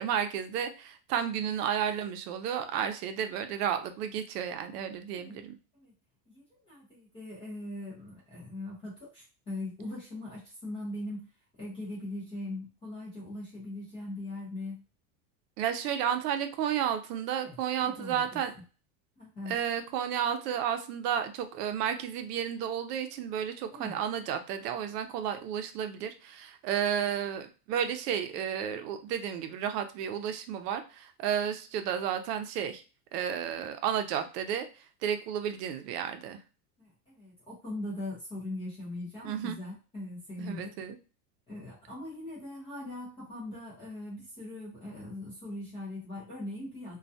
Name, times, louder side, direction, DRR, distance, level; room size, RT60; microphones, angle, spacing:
voice 1, 0.0-5.6 15.6-18.5 19.5-32.8 33.1-34.6 35.0-36.4 39.2-39.6 40.5-41.0, right 9 dB, 75° right, 7 dB, 0.6 m, -32 dB
voice 2, 5.1-5.4 5.8-5.9 6.3-11.3 11.6-14.8 17.4-18.6 19.2-19.6 23.7-24.0 36.8-40.7 41.5-47.0, left 1 dB, 15° left, -6 dB, 0.4 m, -41 dB
2.3 x 2.1 x 2.6 m, 0.34 s
supercardioid pair, 160°, 48 cm